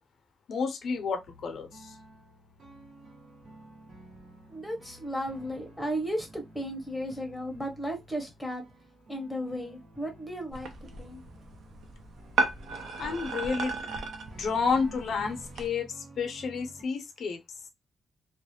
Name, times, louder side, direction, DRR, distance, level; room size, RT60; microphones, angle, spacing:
voice 1, 0.5-2.0 13.0-13.8 14.4-17.4, left 5 dB, 70° left, 0.5 m, -30 dB
sound 1, 0.8-16.8, right 1 dB, 55° right, 1.0 m, -52 dB
voice 2, 4.5-8.6 9.1-11.2, equal, ahead, 0.7 m, -35 dB
sound 2, 10.5-15.7, right 3 dB, 85° right, 0.5 m, -35 dB
2.3 x 2.0 x 2.7 m
wide cardioid pair, 165°, 0 cm